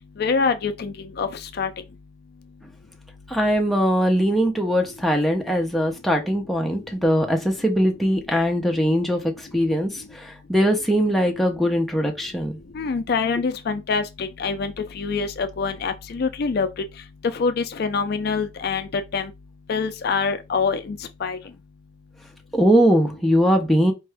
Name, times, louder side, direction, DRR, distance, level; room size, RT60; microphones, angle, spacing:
voice 1, 0.2-1.3 1.6-1.7 12.8-16.7 17.3-19.3 19.7-21.4, left 5 dB, 55° left, 0.4 m, -25 dB
voice 2, 3.3-12.6 22.5-23.9, equal, ahead, 0.7 m, -21 dB
4.5 x 2.5 x 3.3 m
head